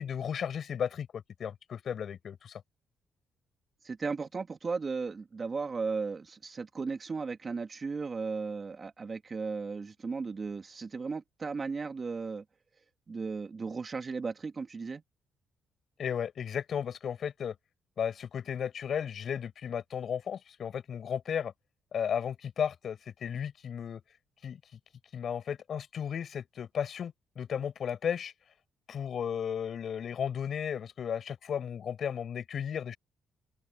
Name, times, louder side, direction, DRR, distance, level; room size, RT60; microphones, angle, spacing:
voice 1, 0.0-2.6 16.0-17.6 18.0-21.5 21.9-24.0 24.4-24.6 25.1-28.3 28.9-33.0, left 8 dB, 55° left, 7.5 m, -34 dB
voice 2, 3.8-12.4 13.1-15.0, right 4 dB, 35° right, 2.6 m, -35 dB
open air
cardioid pair, 90°, 0 cm